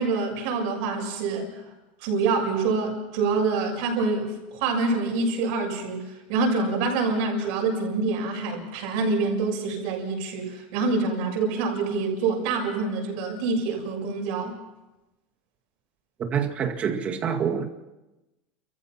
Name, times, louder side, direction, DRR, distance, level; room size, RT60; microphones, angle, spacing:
voice 1, 0.0-1.6 2.0-14.6, right 3 dB, 55° right, 7.0 m, -26 dB
voice 2, 16.2-17.7, right 7 dB, 25° right, 2.0 m, -26 dB
29.5 x 15.0 x 5.9 m
supercardioid pair, 160°, 5 cm